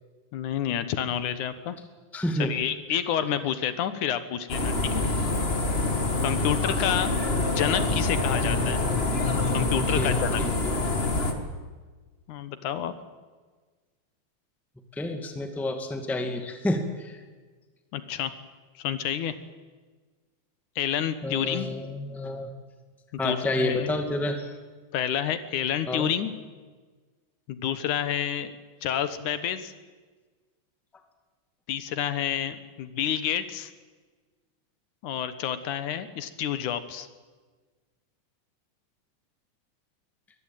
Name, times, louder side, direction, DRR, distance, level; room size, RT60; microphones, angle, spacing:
voice 1, 0.3-1.8 2.4-5.0 6.2-7.1 7.5-8.8 9.5-10.4 12.3-12.9 17.9-18.3 18.8-19.4 20.8-21.7 23.1-23.9 24.9-26.3 27.5-28.5 28.8-29.7 31.7-33.7 35.0-37.1, left 9 dB, 75° left, 12 dB, 2.6 m, -29 dB
voice 2, 2.1-2.5 9.9-10.5 14.9-17.2 21.2-22.5 23.2-24.5 25.9-26.1, left 1 dB, ahead, 6 dB, 1.6 m, -29 dB
sound 1, 4.5-11.3, left 2 dB, 25° left, 1.8 m, -26 dB
23.0 x 20.5 x 9.2 m, 1.4 s
omnidirectional pair, 3.5 m